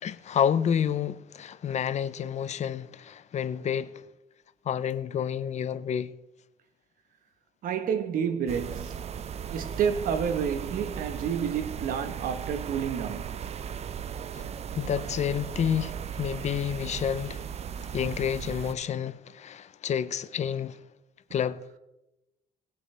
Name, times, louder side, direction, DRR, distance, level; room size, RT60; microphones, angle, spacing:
voice 1, 0.0-4.0 4.6-6.1 14.3-14.5 14.7-17.5 17.9-20.8 21.3-21.6, left 8 dB, 55° left, 0.6 m, -29 dB
voice 2, 7.6-9.1 9.5-13.4, right 7 dB, 80° right, 1.2 m, -29 dB
sound 1, 8.5-18.7, right 8 dB, 50° right, 0.6 m, -37 dB
19.5 x 8.2 x 3.4 m
cardioid pair, 95°, 14 cm